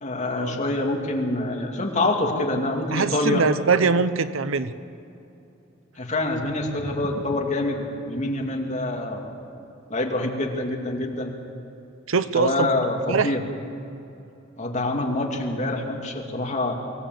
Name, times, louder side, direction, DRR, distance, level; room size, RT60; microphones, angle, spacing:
voice 1, 0.0-3.5 6.0-9.5 9.9-11.3 12.3-13.4 14.6-16.7, left 2 dB, 35° left, 1 dB, 2.5 m, -26 dB
voice 2, 2.9-4.7 12.1-12.7 13.1-13.3, right 4 dB, 80° right, 13 dB, 0.8 m, -22 dB
24.0 x 16.5 x 7.8 m, 2.7 s
head